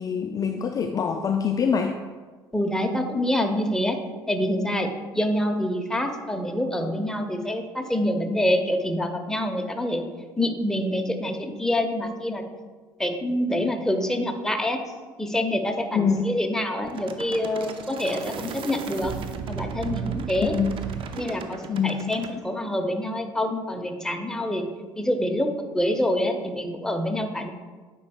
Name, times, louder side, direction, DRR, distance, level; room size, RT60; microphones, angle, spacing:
voice 1, 0.0-2.0 15.9-16.2 20.4-20.8 21.7-21.9, left 6 dB, 30° left, 5 dB, 0.4 m, -24 dB
voice 2, 2.5-4.0 4.3-4.9 5.1-10.0 10.4-12.5 13.0-14.8 15.2-19.2 19.5-20.5 21.1-24.7 25.0-27.5, left 1 dB, 5° left, 4 dB, 0.9 m, -26 dB
sound 1, 16.8-22.3, right 7 dB, 45° right, 0.7 m, -35 dB
9.4 x 5.4 x 2.3 m, 1.4 s
figure-of-eight pair, 55°, 12 cm